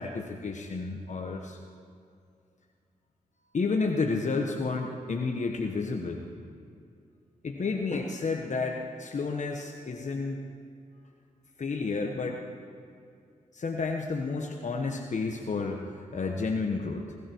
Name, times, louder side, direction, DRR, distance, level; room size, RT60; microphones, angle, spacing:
voice 1, 0.0-1.6 3.5-6.2 7.4-10.4 11.6-12.6 13.5-17.1, left 4 dB, 55° left, 2 dB, 1.3 m, -31 dB
18.5 x 12.5 x 4.6 m, 2.4 s
cardioid pair, 50°, 14 cm